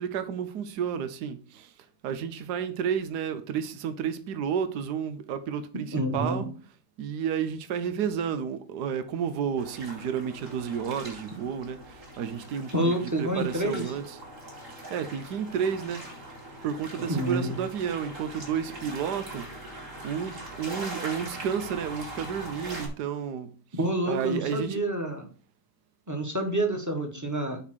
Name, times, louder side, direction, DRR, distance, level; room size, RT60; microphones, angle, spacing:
voice 1, 0.0-1.7 2.0-5.9 6.1-6.5 7.0-12.9 13.2-14.0 14.9-16.1 16.6-19.5 20.0-23.5 24.1-24.8, right 7 dB, 65° right, 1.4 m, -31 dB
voice 2, 5.9-6.5 12.7-13.9 17.0-17.6 23.8-25.3 26.1-27.6, right 1 dB, 10° right, 1.5 m, -28 dB
sound 1, 9.6-22.9, right 1 dB, 45° right, 3.0 m, -42 dB
8.6 x 3.8 x 6.4 m
omnidirectional pair, 2.0 m